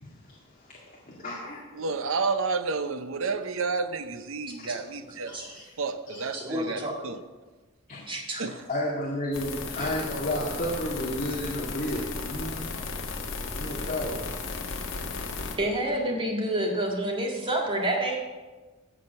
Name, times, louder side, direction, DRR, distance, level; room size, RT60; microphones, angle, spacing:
voice 1, 0.0-1.9 4.6-4.7 5.3-5.7 6.1-6.4 7.9-8.0 8.7-12.8 13.5-14.5, left 1 dB, 40° left, 2.0 m, -33 dB
voice 2, 1.8-5.4 5.8-7.2 8.4-8.5, right 4 dB, 70° right, 0.7 m, -30 dB
voice 3, 4.6-5.5 6.3-7.1 8.1-8.5 9.8-9.9 15.6-18.2, right 1 dB, 25° right, 2.0 m, -29 dB
sound 1, 9.3-15.6, left 3 dB, 65° left, 1.5 m, -35 dB
15.0 x 5.0 x 6.8 m
head